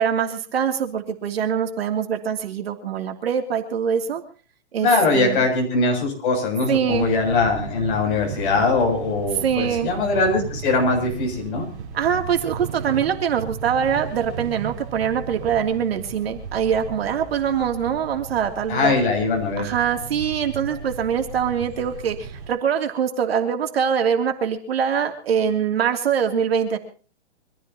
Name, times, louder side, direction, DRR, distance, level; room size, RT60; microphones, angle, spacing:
voice 1, 0.0-4.2 4.7-5.5 6.7-7.1 9.4-9.9 11.9-18.9 19.6-26.8, right 7 dB, 60° right, 5 dB, 2.9 m, -23 dB
voice 2, 4.8-11.7 18.7-19.7, left 3 dB, 45° left, 1 dB, 7.7 m, -21 dB
sound 1, 6.9-22.5, right 6 dB, 30° right, 5.7 m, -36 dB
25.5 x 15.5 x 2.9 m, 0.38 s
hypercardioid pair, 165°, 35 cm